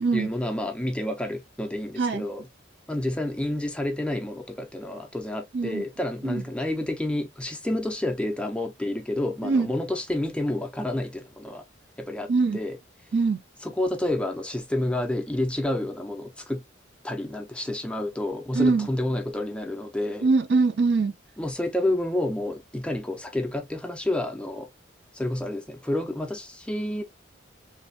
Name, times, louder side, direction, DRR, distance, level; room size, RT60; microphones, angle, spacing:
voice 1, 0.1-2.5 2.9-11.6 12.0-12.8 13.6-16.6 17.0-20.3 21.4-24.7 25.1-27.0, left 1 dB, 5° left, 0.4 m, -29 dB
voice 2, 13.1-13.4 18.5-18.9 20.2-21.1, right 4 dB, 60° right, 0.4 m, -22 dB
3.1 x 2.2 x 2.6 m
head